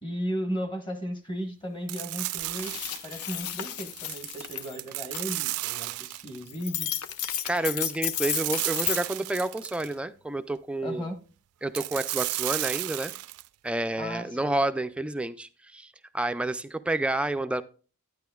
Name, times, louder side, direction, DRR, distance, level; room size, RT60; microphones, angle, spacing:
voice 1, 0.0-2.7 3.0-6.9 10.8-11.2 14.0-14.6, equal, 20° left, 1.2 m, -35 dB
sound 1, 1.9-3.2 3.9-6.5 8.2-9.9 11.7-13.5, right 18 dB, 85° right, 0.4 m, -33 dB
sound 2, 2.0-2.1 2.4-4.8 5.1-5.3 6.5-9.0, left 9 dB, 85° left, 0.7 m, -33 dB
voice 2, 7.4-11.1 11.6-13.1 13.6-17.6, right 2 dB, 5° right, 0.3 m, -29 dB
10.5 x 9.6 x 2.3 m
head